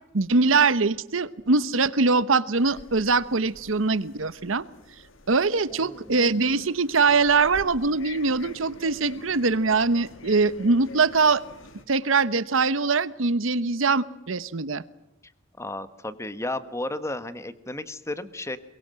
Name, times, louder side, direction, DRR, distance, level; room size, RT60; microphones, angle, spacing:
voice 1, 0.1-4.6 5.3-11.4 11.9-14.8, right 4 dB, 80° right, 16 dB, 1.0 m, -22 dB
sound 1, 2.5-11.8, left 2 dB, 80° left, 2.7 m, -47 dB
voice 2, 5.7-6.2 15.6-18.6, left 1 dB, 15° left, 13 dB, 1.3 m, -33 dB
23.0 x 22.5 x 7.6 m, 0.89 s
head